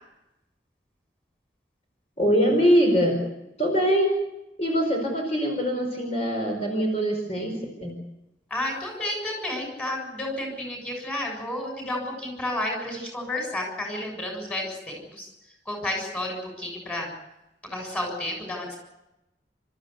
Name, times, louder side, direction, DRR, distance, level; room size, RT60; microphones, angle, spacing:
voice 1, 2.2-3.2 3.6-4.2 4.6-7.5 7.8-8.0, equal, 35° left, 1 dB, 4.8 m, -23 dB
voice 2, 8.5-17.1 17.6-18.8, left 1 dB, 10° left, 1 dB, 6.9 m, -31 dB
29.0 x 14.0 x 8.3 m, 0.95 s
head